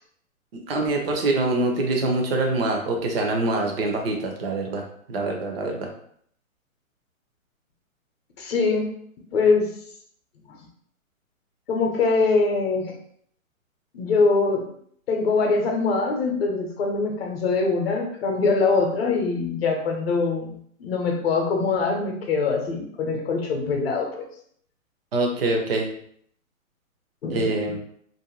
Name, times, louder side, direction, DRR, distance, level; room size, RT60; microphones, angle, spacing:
voice 1, 0.5-4.8 5.1-5.9 25.1-25.9 27.3-27.8, right 2 dB, 45° right, 2 dB, 0.6 m, -24 dB
voice 2, 8.4-8.9 9.3-9.7 11.7-12.9 13.9-14.7 15.1-24.3 27.2-27.6, left 4 dB, 45° left, 2 dB, 0.7 m, -23 dB
2.6 x 2.1 x 2.9 m, 0.64 s
hypercardioid pair, 150°, 41 cm